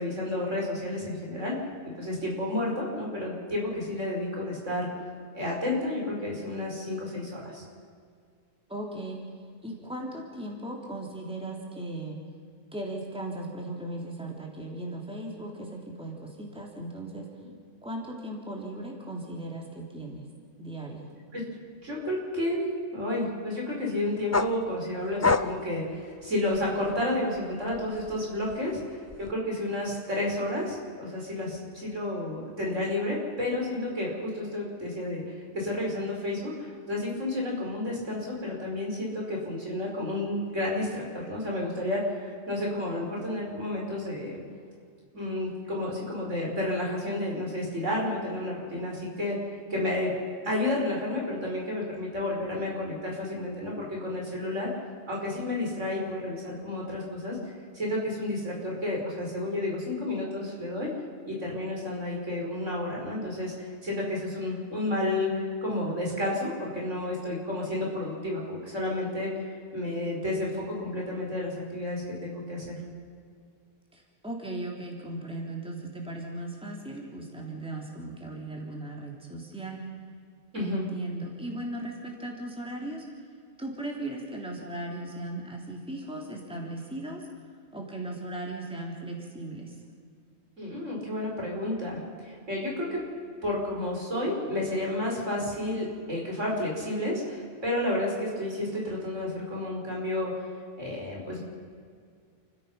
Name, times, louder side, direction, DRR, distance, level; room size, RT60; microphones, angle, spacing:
voice 1, 0.0-1.6 2.0-5.0 5.3-7.6 21.3-21.4 21.8-22.6 22.9-44.4 45.1-49.4 49.7-50.1 50.4-54.7 55.1-57.4 57.7-60.9 61.3-69.5 69.7-72.8 80.5-80.9 90.6-93.0 93.4-100.5 100.8-101.4, left 1 dB, 75° right, -2 dB, 5.9 m, -31 dB
voice 2, 8.7-9.2 9.6-12.2 12.7-17.3 17.8-20.2 20.6-21.1 73.9-79.8 80.5-83.0 83.6-87.2 87.7-89.7, right 1 dB, 5° right, -1 dB, 3.3 m, -37 dB
sound 1, 24.3-26.9 27.3-29.3, left 3 dB, 25° left, 0.3 m, -30 dB
29.5 x 16.5 x 5.7 m, 2.1 s
omnidirectional pair, 1.3 m